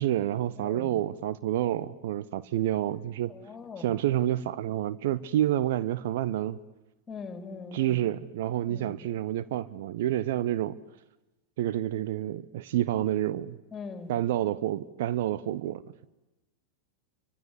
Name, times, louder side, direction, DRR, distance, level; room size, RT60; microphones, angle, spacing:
voice 1, 0.0-3.3 3.8-6.6 7.7-10.8 11.6-13.6 14.1-16.0, right 12 dB, 55° right, 0.9 m, -29 dB
voice 2, 0.6-1.0 3.3-4.0 7.1-8.0 8.7-9.0 13.7-14.1, left 4 dB, 20° left, 4.3 m, -41 dB
28.0 x 25.5 x 8.2 m
figure-of-eight pair, 90°, 0 cm